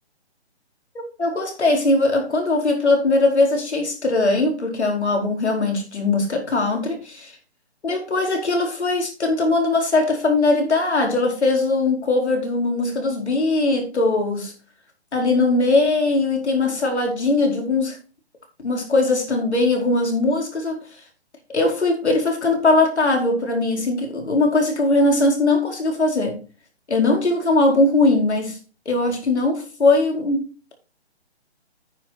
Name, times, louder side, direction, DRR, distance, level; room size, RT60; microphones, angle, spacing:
voice 1, 1.2-7.3 7.8-14.5 15.1-18.0 18.6-20.8 21.5-26.4 26.9-28.6 28.9-30.5, left 2 dB, 80° left, 4.6 m, -20 dB
9.4 x 7.6 x 4.3 m
hypercardioid pair, 165°, 33 cm